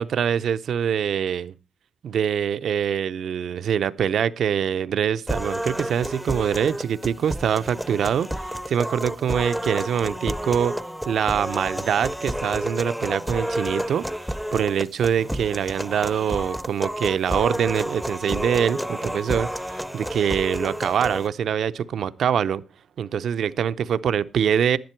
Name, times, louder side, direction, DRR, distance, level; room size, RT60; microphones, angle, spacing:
voice 1, 0.0-1.5 2.0-10.7 11.1-22.6 23.0-24.8, right 8 dB, 75° right, 0.5 m, -24 dB
sound 1, 5.3-21.3, equal, ahead, 0.5 m, -30 dB
11.0 x 10.5 x 4.5 m
cardioid pair, 115°, 0 cm